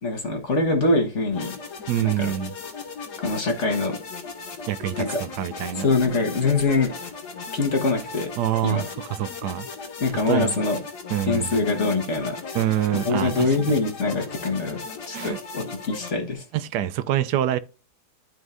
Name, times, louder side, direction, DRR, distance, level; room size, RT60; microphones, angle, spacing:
voice 1, 0.0-1.5 2.0-2.3 3.2-4.0 5.0-5.2 5.8-7.0 7.5-8.3 8.6-8.8 10.0-10.8 11.2-12.4 13.0-14.8 15.1-16.4, left 3 dB, 45° left, 1.7 m, -24 dB
sound 1, 1.3-16.1, left 4 dB, 80° left, 1.9 m, -37 dB
voice 2, 1.9-2.5 4.7-5.9 8.4-9.7 10.1-10.6 11.1-11.6 12.5-13.6 15.1-15.4 16.5-17.6, right 12 dB, 85° right, 1.2 m, -26 dB
12.5 x 4.5 x 2.6 m
omnidirectional pair, 1.8 m